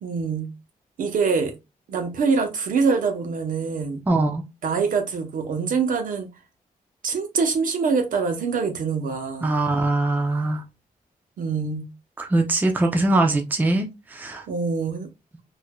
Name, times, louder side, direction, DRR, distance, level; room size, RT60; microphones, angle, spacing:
voice 1, 0.0-0.5 1.0-1.5 1.9-4.0 4.6-6.3 7.0-9.6 11.4-11.9 14.5-15.1, right 5 dB, 65° right, 0.8 m, -24 dB
voice 2, 4.1-4.4 9.4-10.6 12.2-14.4, right 2 dB, 10° right, 0.5 m, -22 dB
4.6 x 2.6 x 2.2 m
wide cardioid pair, 165°, 15 cm